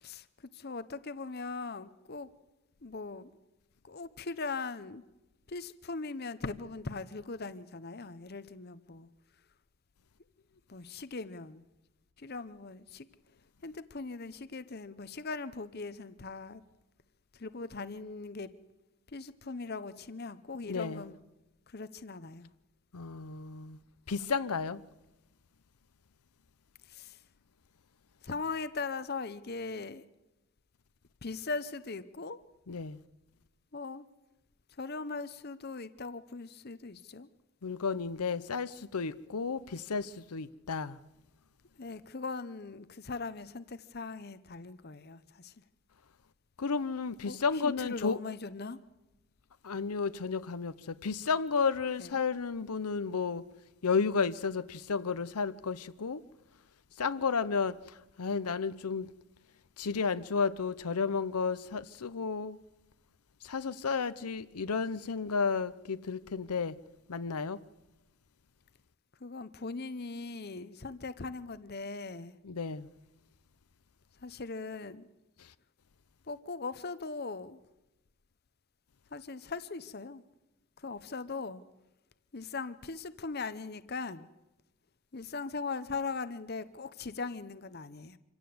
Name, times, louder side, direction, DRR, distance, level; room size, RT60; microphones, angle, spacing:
voice 1, 0.0-2.3 2.8-3.3 3.8-5.0 5.5-9.1 10.7-11.6 12.2-13.1 13.6-16.6 17.3-18.5 19.1-21.2 21.7-22.5 26.9-27.2 28.2-30.0 31.2-32.4 33.7-34.1 34.8-37.3 41.8-45.5 47.2-47.4 47.6-48.8 52.0-52.1 69.2-72.3 74.2-75.1 76.3-77.6 79.1-80.2 80.8-81.6 82.3-84.3 85.1-88.2, left 4 dB, 45° left, 0.8 m, -40 dB
voice 2, 20.7-21.0 22.9-23.8 24.1-24.8 32.7-33.0 37.6-41.0 46.6-48.2 49.6-53.4 53.8-56.2 57.0-59.1 59.8-62.6 63.4-66.7 67.1-67.6 72.4-72.9 75.4-75.5, left 5 dB, 90° left, 0.7 m, -32 dB
26.0 x 16.5 x 7.9 m
head